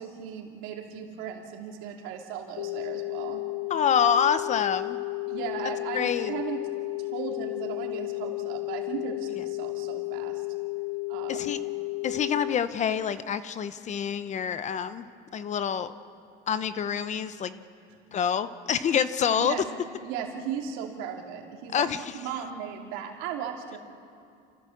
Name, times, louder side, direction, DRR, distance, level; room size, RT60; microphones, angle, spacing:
voice 1, 0.0-3.4 5.3-6.7 7.1-10.4 11.1-11.5 19.4-19.6 20.0-23.8, right 8 dB, 75° right, 1 dB, 2.8 m, -36 dB
sound 1, 2.6-12.6, left 26 dB, 90° left, 0.6 m, -33 dB
voice 2, 3.7-5.0 5.9-6.3 11.3-11.6 12.0-15.1 15.3-15.9 16.5-17.6 18.1-19.6 21.7-22.0, left 8 dB, 35° left, 13 dB, 0.8 m, -27 dB
28.5 x 15.5 x 7.2 m, 2.4 s
cardioid pair, 120°, 21 cm